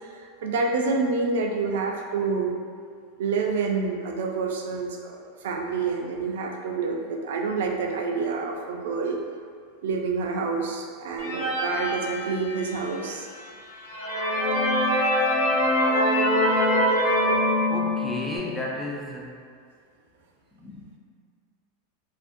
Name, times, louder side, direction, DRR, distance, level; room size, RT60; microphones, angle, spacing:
voice 1, 0.1-2.6 3.2-9.2 9.8-13.3, right 4 dB, 80° right, 1 dB, 0.3 m, -28 dB
sound 1, 11.2-12.8 13.4-13.5 13.8-18.4, left 1 dB, 85° left, 0.6 m, -23 dB
voice 2, 17.7-19.4 20.5-21.0, left 1 dB, 5° left, -4 dB, 0.3 m, -34 dB
2.5 x 2.1 x 2.5 m, 2.1 s
supercardioid pair, 130°, 0 cm